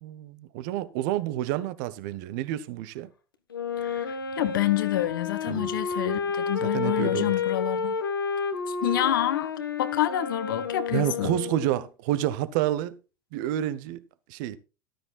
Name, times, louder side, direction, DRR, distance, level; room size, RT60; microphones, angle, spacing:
voice 1, 0.0-3.1 5.5-5.8 6.7-7.3 10.9-13.0 13.3-14.6, right 13 dB, 60° right, 1.0 m, -29 dB
Wind instrument woodwind instrument, 3.5-11.9, left 5 dB, 90° left, 1.5 m, -30 dB
voice 2, 3.8-8.0 8.7-9.5 9.8-11.3, left 13 dB, 75° left, 1.2 m, -28 dB
14.0 x 12.0 x 2.4 m
hypercardioid pair, 80°, 11 cm